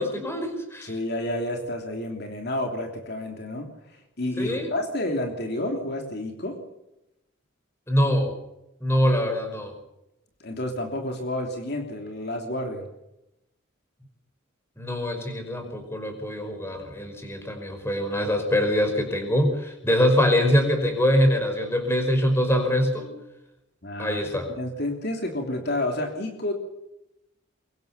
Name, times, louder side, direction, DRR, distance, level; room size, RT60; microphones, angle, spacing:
voice 1, 0.0-0.9 4.4-4.7 7.9-8.3 8.8-9.7 14.8-23.1 24.0-24.5, equal, 10° left, 5 dB, 5.2 m, -24 dB
voice 2, 0.8-6.6 10.4-12.9 23.8-24.2 24.6-26.5, left 1 dB, 50° left, 3 dB, 3.2 m, -30 dB
24.0 x 23.0 x 7.0 m, 0.89 s
head